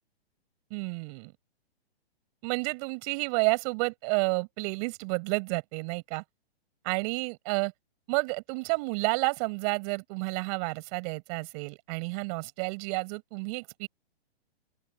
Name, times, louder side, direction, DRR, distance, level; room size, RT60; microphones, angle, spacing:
voice 1, 0.7-1.3 2.4-6.2 6.8-7.7 8.1-13.9, right 33 dB, 35° right, 5.9 m, -30 dB
open air
hypercardioid pair, 145°, 31 cm